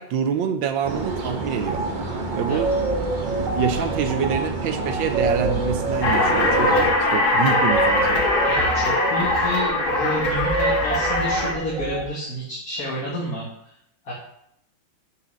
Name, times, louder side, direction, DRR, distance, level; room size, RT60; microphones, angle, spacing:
voice 1, 0.0-1.8 2.3-2.7 3.4-6.7 7.0-8.2, right 7 dB, 80° right, 8 dB, 1.4 m, -26 dB
sound 1, 0.8-6.9, right 3 dB, 30° right, 1.1 m, -29 dB
sound 2, 1.7-1.9 2.3-12.0, right 2 dB, 45° right, 1.5 m, -27 dB
sound 3, 6.0-11.5, left 2 dB, 90° left, 2.2 m, -21 dB
voice 2, 8.5-13.5 14.0-14.1, equal, 50° left, -5 dB, 2.1 m, -29 dB
6.5 x 5.6 x 6.1 m, 0.77 s
omnidirectional pair, 2.1 m